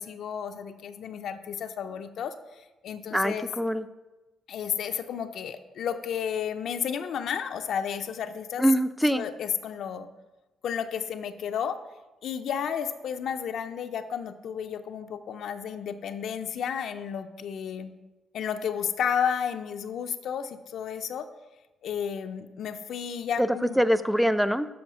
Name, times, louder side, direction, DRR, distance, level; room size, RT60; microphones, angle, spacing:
voice 1, 0.0-3.5 4.5-8.6 9.1-10.1 10.6-11.8 12.2-17.9 18.3-21.3 21.8-23.9, left 8 dB, 70° left, 8 dB, 0.5 m, -32 dB
voice 2, 3.1-3.9 8.6-9.2 23.4-23.5 23.8-24.7, equal, ahead, 13 dB, 0.4 m, -23 dB
7.0 x 4.8 x 6.1 m, 1.1 s
cardioid pair, 90°, 0 cm